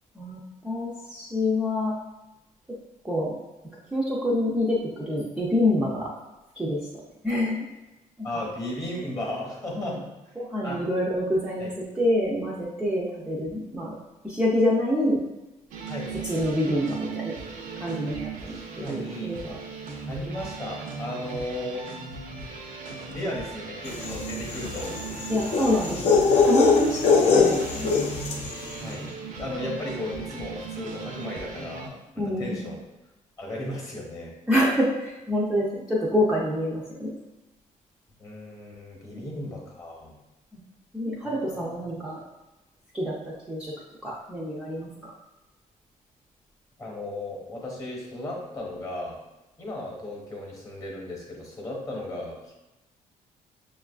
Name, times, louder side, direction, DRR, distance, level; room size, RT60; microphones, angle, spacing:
voice 1, 0.2-1.9 3.0-3.4 3.9-6.1 6.6-6.8 7.2-7.7 8.2-8.4 9.8-9.9 10.4-14.0 14.2-15.2 16.2-17.4 17.8-19.6 25.3-27.9 32.2-32.6 34.5-37.1 39.1-39.4 40.5-40.6 40.9-42.2 42.9-43.7 44.0-45.1, left 1 dB, 5° right, -6 dB, 0.4 m, -27 dB
voice 2, 8.2-10.1 10.6-10.8 11.6-11.7 15.9-16.1 18.5-19.3 20.1-21.8 22.4-22.5 23.1-24.9 28.8-29.1 29.4-32.7 33.4-34.3 38.2-40.1 41.2-41.8 46.8-49.2 49.6-52.5, left 1 dB, 25° left, -2 dB, 0.9 m, -35 dB
sound 1, 15.7-31.9, right 5 dB, 75° right, 0.6 m, -38 dB
sound 2, 24.0-28.5, left 4 dB, 55° left, 0.5 m, -22 dB
6.3 x 2.4 x 2.3 m, 1.0 s
cardioid pair, 160°, 14 cm